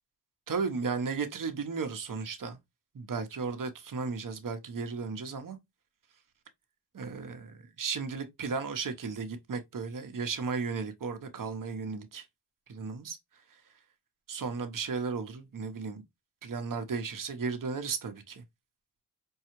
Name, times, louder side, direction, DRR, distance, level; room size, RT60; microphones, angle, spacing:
voice 1, 0.5-2.6 2.9-5.6 6.9-12.2 12.7-13.2 14.3-16.0 16.4-18.4, right 5 dB, 55° right, 1.0 m, -35 dB
5.5 x 2.3 x 3.0 m
cardioid pair, 55°, 39 cm